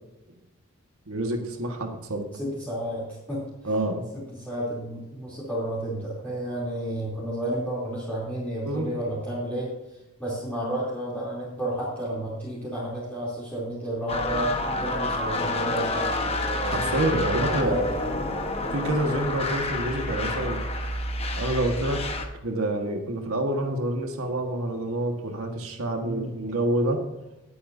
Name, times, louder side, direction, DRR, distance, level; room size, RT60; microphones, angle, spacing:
voice 1, 1.1-2.3 3.6-4.0 8.6-8.9 16.6-17.8 18.7-20.6 21.3-22.0 22.4-27.0, right 1 dB, 90° right, 3 dB, 1.6 m, -27 dB
voice 2, 2.3-3.7 4.1-9.7 10.2-16.4 17.4-18.1 26.0-26.3, right 1 dB, 5° left, -9 dB, 3.1 m, -31 dB
sound 1, 14.1-22.3, left 2 dB, 30° left, 1.2 m, -28 dB
20.0 x 8.6 x 2.7 m, 0.99 s
head